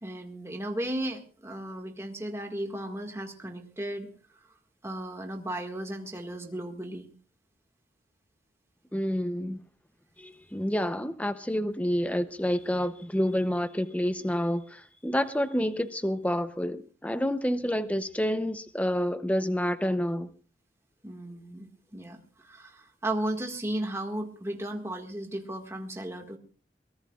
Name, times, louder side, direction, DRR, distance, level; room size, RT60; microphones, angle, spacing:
voice 1, 0.0-4.1 4.8-7.1 21.0-26.4, right 1 dB, 15° right, 1.8 m, -35 dB
voice 2, 8.9-9.6 10.2-20.3, equal, 10° left, 0.7 m, -28 dB
23.0 x 18.5 x 2.4 m
head